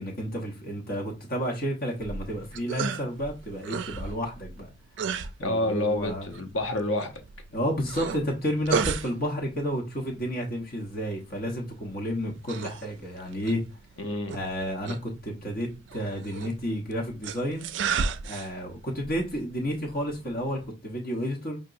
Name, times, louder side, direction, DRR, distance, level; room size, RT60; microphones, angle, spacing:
voice 1, 0.0-4.7 5.4-6.3 7.5-13.6 14.3-17.7 18.2-21.6, equal, 50° left, 1.0 m, -31 dB
sound 1, 1.9-20.7, right 5 dB, 75° right, 0.4 m, -36 dB
voice 2, 5.4-7.2 14.0-14.4, left 1 dB, 85° left, 0.8 m, -28 dB
5.1 x 2.9 x 2.5 m
head